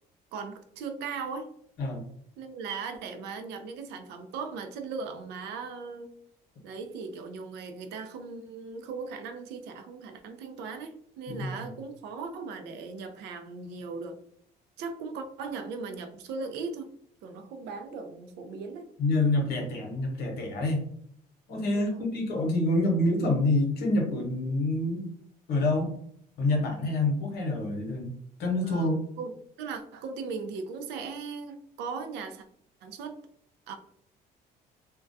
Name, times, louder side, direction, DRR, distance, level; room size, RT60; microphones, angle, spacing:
voice 1, 0.3-1.5 2.4-6.1 6.6-14.2 14.8-16.9 17.2-18.9 21.6-22.1 28.6-28.9 29.2-32.5 32.8-33.2 33.7-33.8, right 4 dB, 85° right, 7 dB, 0.4 m, -38 dB
voice 2, 11.3-11.7 19.0-20.8 21.5-25.1 25.5-25.9 26.4-28.1 28.4-29.0, left 2 dB, 70° left, 1 dB, 0.8 m, -27 dB
2.3 x 2.2 x 2.5 m, 0.67 s
cardioid pair, 110°, 17 cm